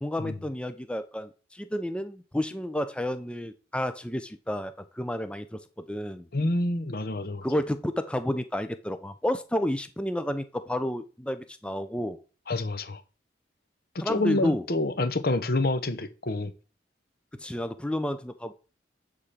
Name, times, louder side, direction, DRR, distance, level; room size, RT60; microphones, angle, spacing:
voice 1, 0.0-6.3 7.4-12.2 14.0-14.6 17.3-18.5, left 1 dB, 5° left, 0.5 m, -31 dB
voice 2, 6.3-7.5 12.5-13.0 13.9-16.5, left 2 dB, 55° left, 0.9 m, -28 dB
9.9 x 3.7 x 5.9 m
head